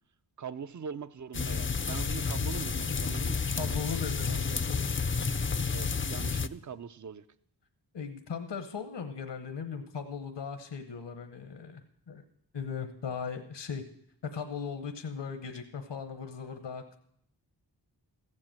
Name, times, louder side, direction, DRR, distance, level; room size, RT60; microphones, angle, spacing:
voice 1, 0.4-3.8 5.7-7.2, right 6 dB, 40° right, 15 dB, 0.6 m, -42 dB
sound 1, 1.3-6.5, left 5 dB, 30° left, 0.5 m, -31 dB
voice 2, 3.6-4.9 7.9-12.2 12.5-13.8 14.2-17.0, left 6 dB, 70° left, 8 dB, 1.0 m, -38 dB
14.5 x 7.7 x 7.5 m, 0.71 s
wide cardioid pair, 50°, 43 cm